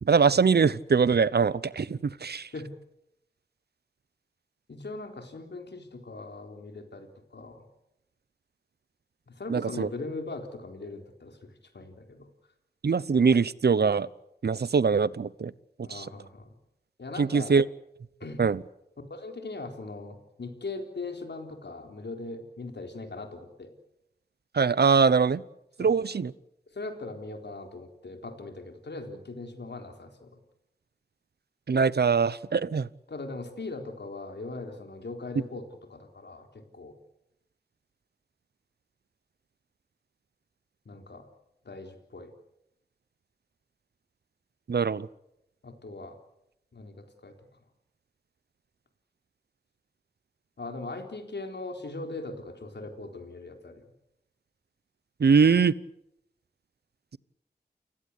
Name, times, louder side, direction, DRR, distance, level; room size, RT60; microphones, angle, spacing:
voice 1, 0.0-2.5 9.5-9.9 12.8-14.1 14.4-15.5 15.8-16.1 17.2-17.6 18.4-18.6 24.5-25.4 25.8-26.3 31.7-32.9 44.7-45.1 55.2-55.7, right 5 dB, 70° right, 0.8 m, -23 dB
voice 2, 4.7-7.6 9.3-12.3 15.8-16.5 17.0-17.6 18.2-18.4 19.1-23.7 25.8-25.9 26.7-30.4 33.1-35.6 35.9-36.9 40.9-41.2 41.6-42.3 45.6-46.2 46.7-47.0 47.2-47.3 50.6-53.8, left 3 dB, 80° left, 4.0 m, -40 dB
29.5 x 16.5 x 8.4 m
cardioid pair, 45°, 17 cm